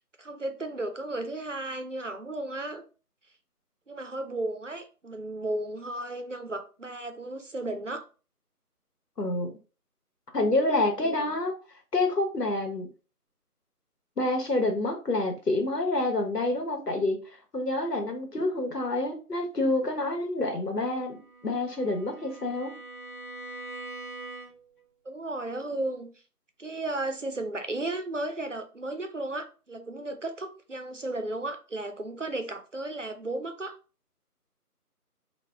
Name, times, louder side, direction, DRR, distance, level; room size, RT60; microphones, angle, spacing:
voice 1, 0.0-2.8 3.9-8.1 11.0-11.3 25.0-26.1 26.6-33.8, right 2 dB, 55° right, 0.6 m, -34 dB
voice 2, 9.2-9.5 10.3-11.5 11.9-12.9 14.2-17.2 17.5-22.7, left 2 dB, 90° left, 1.2 m, -27 dB
Bowed string instrument, 21.0-24.8, right 2 dB, 35° left, 1.0 m, -43 dB
4.1 x 2.3 x 3.4 m
figure-of-eight pair, 165°, 47 cm